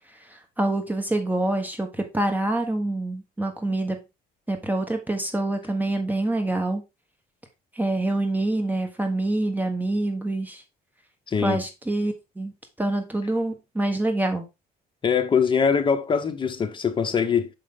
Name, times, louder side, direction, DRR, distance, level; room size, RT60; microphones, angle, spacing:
voice 1, 0.3-4.0 4.5-6.8 7.7-10.6 11.4-12.5 12.8-14.4, right 2 dB, 10° right, 1.3 m, -26 dB
voice 2, 11.3-11.6 15.0-17.5, left 6 dB, 30° left, 1.0 m, -22 dB
6.3 x 5.1 x 3.7 m
cardioid pair, 110°, 17 cm